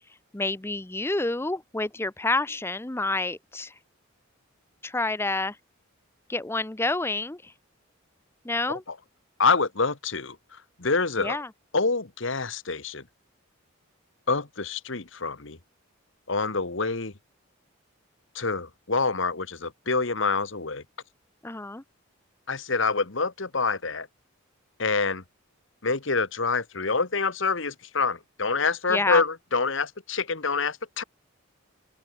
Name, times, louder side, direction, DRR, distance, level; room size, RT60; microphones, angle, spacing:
voice 1, 0.3-3.7 4.8-5.6 6.3-7.5 8.4-8.8 11.2-11.5 21.4-21.8 28.9-29.2, left 2 dB, 10° left, 0.6 m, -28 dB
voice 2, 9.4-10.4 10.8-11.4 11.7-13.0 14.3-15.6 16.3-17.1 18.3-20.8 22.5-24.1 24.8-25.2 25.8-31.0, left 4 dB, 60° left, 1.6 m, -26 dB
open air
head